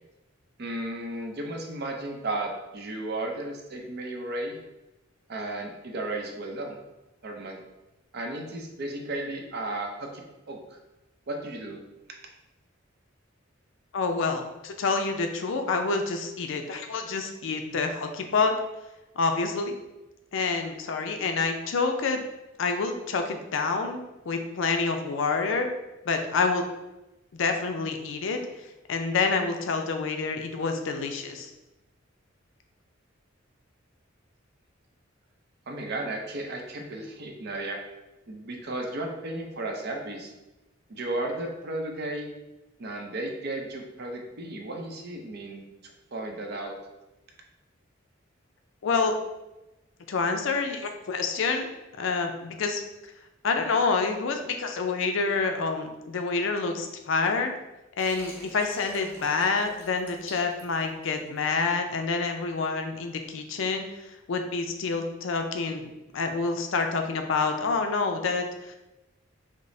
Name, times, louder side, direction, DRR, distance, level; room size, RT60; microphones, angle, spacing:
voice 1, 0.6-4.6 5.3-6.8 7.2-7.6 8.1-10.8 11.3-11.8 35.7-37.8 38.3-40.3 40.9-42.3 42.8-46.8, right 2 dB, 55° right, 2 dB, 0.6 m, -34 dB
voice 2, 13.9-18.5 19.2-19.7 20.3-22.2 22.6-24.0 24.2-25.7 26.1-26.6 27.3-28.4 28.9-31.5 48.8-49.2 50.1-51.7 52.0-52.8 53.4-57.5 58.0-63.8 64.3-68.8, left 4 dB, 70° left, 5 dB, 0.4 m, -27 dB
Water, 58.0-61.4, equal, 10° left, 0.8 m, -46 dB
5.0 x 2.0 x 2.6 m, 0.99 s
head